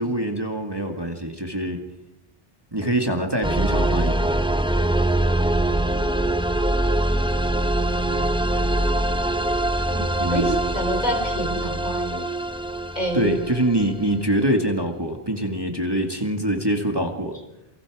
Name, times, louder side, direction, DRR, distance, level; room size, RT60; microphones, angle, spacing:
voice 1, 0.0-1.8 2.7-4.3 10.2-10.6 13.1-17.4, right 1 dB, 20° right, 3 dB, 2.1 m, -24 dB
sound 1, 3.4-14.1, right 1 dB, 5° right, 1.0 m, -23 dB
voice 2, 10.3-12.2 12.9-13.4, right 1 dB, 40° left, 4 dB, 4.4 m, -28 dB
29.0 x 23.5 x 4.9 m, 0.85 s
omnidirectional pair, 1.1 m